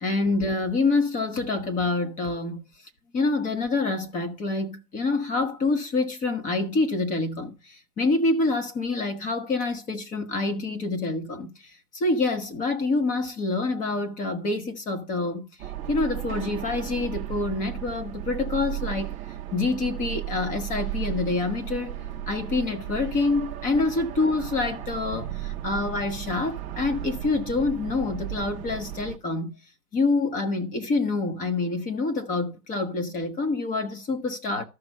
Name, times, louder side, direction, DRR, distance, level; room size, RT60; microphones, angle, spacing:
voice 1, 0.0-2.6 3.1-15.5 15.9-19.2 19.5-22.0 22.3-29.6 29.9-34.6, left 3 dB, 15° left, 1.2 m, -26 dB
sound 1, 15.6-29.2, right 12 dB, 15° right, 0.8 m, -35 dB
13.0 x 6.2 x 5.4 m
hypercardioid pair, 140°, 46 cm